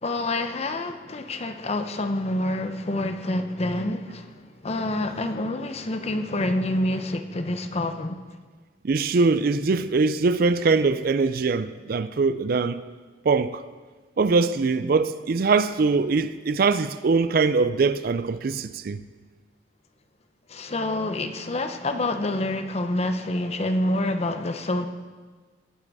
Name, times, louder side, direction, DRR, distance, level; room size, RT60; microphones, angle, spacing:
voice 1, 0.0-8.2 20.5-24.9, left 1 dB, 35° left, 0.8 m, -27 dB
voice 2, 8.8-12.8 13.2-13.6 14.2-19.0, right 4 dB, 55° right, 0.4 m, -22 dB
18.0 x 7.5 x 4.8 m
head